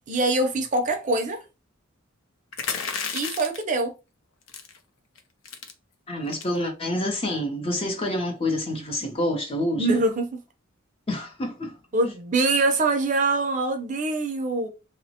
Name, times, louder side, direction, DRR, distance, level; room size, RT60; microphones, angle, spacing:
voice 1, 0.1-1.4 3.1-3.9 9.8-10.4 11.9-14.7, right 2 dB, 40° right, 0.5 m, -24 dB
sound 1, 2.5-3.7 4.5-4.8 5.2-5.3 5.5-5.7 6.3-6.6, left 6 dB, 75° left, 0.5 m, -32 dB
voice 2, 6.1-10.0 11.1-11.7, left 1 dB, 30° left, 0.6 m, -27 dB
2.8 x 2.1 x 2.8 m
head